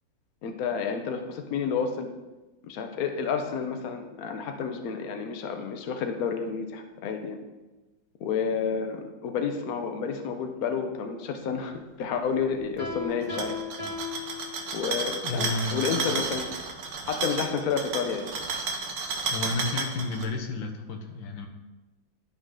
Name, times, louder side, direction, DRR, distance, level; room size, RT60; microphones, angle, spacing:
voice 1, 0.4-2.1 2.6-7.4 8.2-13.6 14.7-16.5 17.1-18.3, left 6 dB, 60° left, 6 dB, 1.1 m, -30 dB
Piano, 12.8-15.1, left 4 dB, 20° right, 2.0 m, -37 dB
sound 1, 13.2-20.2, right 4 dB, 70° right, 1.5 m, -32 dB
voice 2, 15.2-16.0 19.3-21.5, left 3 dB, 90° left, 3 dB, 1.7 m, -32 dB
12.0 x 4.1 x 3.7 m, 1.1 s
omnidirectional pair, 2.0 m